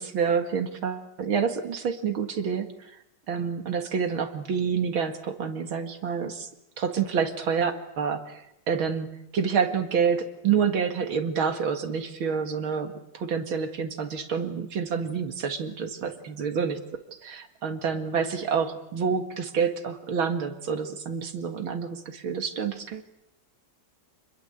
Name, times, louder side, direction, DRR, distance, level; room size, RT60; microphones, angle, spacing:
voice 1, 0.0-2.9 3.3-6.5 6.8-9.1 9.3-16.8 17.1-23.0, right 6 dB, 80° right, 7 dB, 2.8 m, -28 dB
29.0 x 21.5 x 8.1 m, 0.82 s
omnidirectional pair, 2.2 m